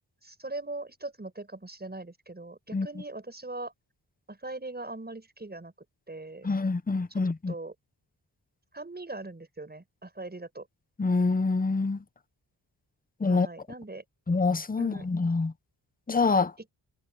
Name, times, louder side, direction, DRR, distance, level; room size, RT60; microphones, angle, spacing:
voice 1, 0.2-3.7 4.3-5.7 6.1-6.5 7.2-7.7 8.7-10.7 13.3-14.0 14.8-15.1, right 2 dB, 20° right, 7.0 m, -40 dB
voice 2, 6.4-7.5 11.0-12.0 13.2-13.5 14.3-15.5 16.1-16.5, left 3 dB, 20° left, 0.7 m, -26 dB
wide cardioid pair, 130°, 45 cm